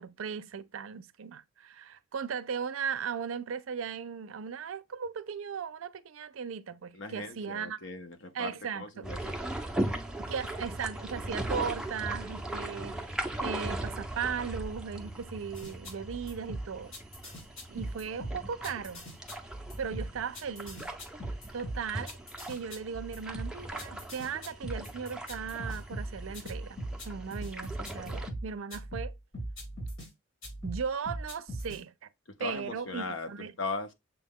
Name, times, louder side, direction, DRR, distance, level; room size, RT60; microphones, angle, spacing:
voice 1, 0.0-7.8 8.3-9.1 10.2-16.9 17.7-19.1 19.8-20.9 21.5-22.2 22.5-26.8 27.1-29.1 30.6-32.1 32.4-33.5, right 6 dB, 75° right, 0.5 m, -37 dB
voice 2, 6.9-9.4 32.4-33.9, left 3 dB, 65° left, 0.8 m, -38 dB
sound 1, 9.0-28.3, right 1 dB, 5° right, 0.5 m, -39 dB
sound 2, 15.5-30.1 30.4-31.8, right 1 dB, 85° left, 3.5 m, -40 dB
6.7 x 2.3 x 3.4 m
head